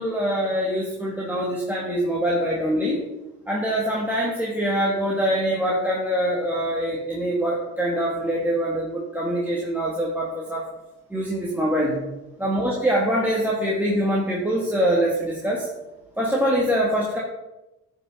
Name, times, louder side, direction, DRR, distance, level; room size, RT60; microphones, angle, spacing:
voice 1, 0.0-3.0 3.5-10.7 11.1-12.0 12.4-15.7 16.2-17.2, equal, 5° right, -5 dB, 1.8 m, -24 dB
10.5 x 5.5 x 3.7 m, 0.98 s
cardioid pair, 90°, 30 cm